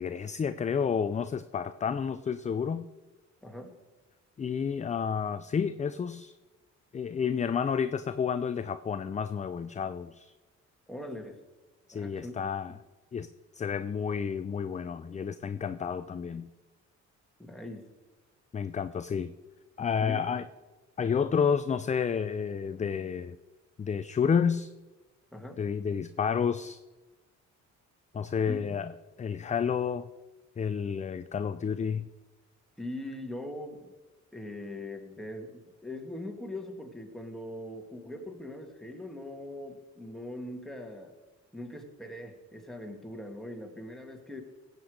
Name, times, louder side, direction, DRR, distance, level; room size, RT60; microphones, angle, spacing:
voice 1, 0.0-2.9 4.4-6.4 6.9-10.3 11.9-12.8 13.1-13.3 13.5-16.5 18.5-19.3 19.8-20.4 21.0-23.4 23.8-24.7 25.6-26.8 28.1-28.9 29.2-30.1 30.6-32.1, left 6 dB, 25° left, 12 dB, 0.4 m, -30 dB
voice 2, 3.4-3.8 10.9-11.4 11.9-12.4 17.4-17.9 20.0-20.2 25.3-25.6 28.5-28.8 32.8-33.9 34.3-41.1 41.5-44.4, left 1 dB, ahead, 2 dB, 2.1 m, -41 dB
16.5 x 8.2 x 5.1 m, 1.2 s
cardioid pair, 90°, 30 cm